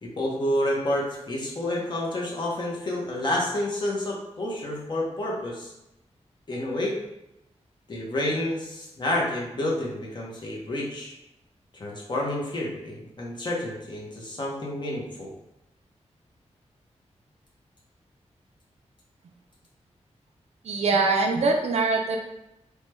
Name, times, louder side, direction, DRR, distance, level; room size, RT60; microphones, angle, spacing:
voice 1, 0.0-5.7 6.5-7.0 7.9-11.2 11.8-15.3, left 1 dB, 40° left, -3 dB, 0.7 m, -29 dB
voice 2, 20.6-22.2, right 3 dB, 65° right, 1 dB, 0.4 m, -23 dB
3.1 x 2.2 x 3.0 m, 0.89 s
wide cardioid pair, 150°, 12 cm